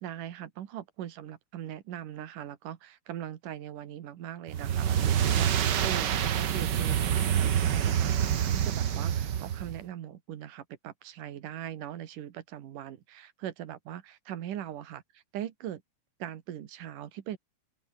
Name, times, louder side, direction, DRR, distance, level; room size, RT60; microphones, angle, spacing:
voice 1, 0.0-15.8 16.2-17.4, right 11 dB, 85° right, 3.2 m, -40 dB
sound 1, 4.5-9.8, right 9 dB, 65° right, 1.0 m, -27 dB
open air
omnidirectional pair, 3.7 m